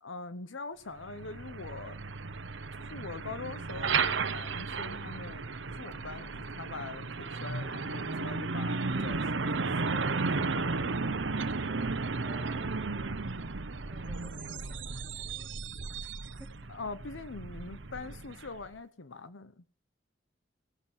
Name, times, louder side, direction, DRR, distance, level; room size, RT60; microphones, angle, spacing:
voice 1, 0.0-2.0 2.9-11.5 16.7-19.6, left 3 dB, 85° left, 14 dB, 1.0 m, -43 dB
Truck, 1.0-18.7, right 4 dB, 75° right, 0.9 m, -34 dB
voice 2, 12.2-13.5 13.8-15.6 16.0-16.1 16.4-16.5, equal, ahead, 0 dB, 3.5 m, -54 dB
18.0 x 10.0 x 7.5 m, 0.43 s
head